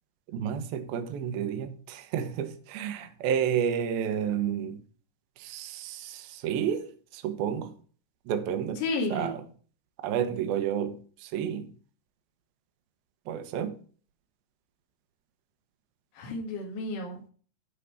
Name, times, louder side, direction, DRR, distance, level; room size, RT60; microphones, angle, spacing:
voice 1, 0.3-4.8 5.4-7.7 8.3-8.8 9.1-9.4 10.0-11.7 13.3-13.8, right 8 dB, 70° right, 2.5 m, -31 dB
voice 2, 8.8-9.4 16.1-17.3, left 2 dB, 80° left, 4.5 m, -32 dB
12.0 x 5.0 x 5.8 m
omnidirectional pair, 5.4 m